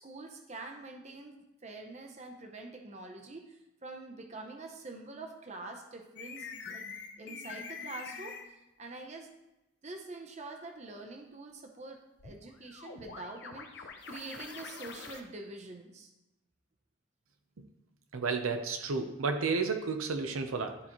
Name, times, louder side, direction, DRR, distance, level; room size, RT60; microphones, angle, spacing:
voice 1, 0.0-6.8 7.2-9.3 9.8-16.1, right 2 dB, 30° right, 3 dB, 0.7 m, -45 dB
sound 1, 6.2-8.5 12.2-15.2, left 5 dB, 55° left, 0.7 m, -45 dB
voice 2, 18.1-20.8, right 4 dB, 75° right, 6 dB, 0.6 m, -32 dB
12.0 x 4.1 x 3.0 m, 0.98 s
head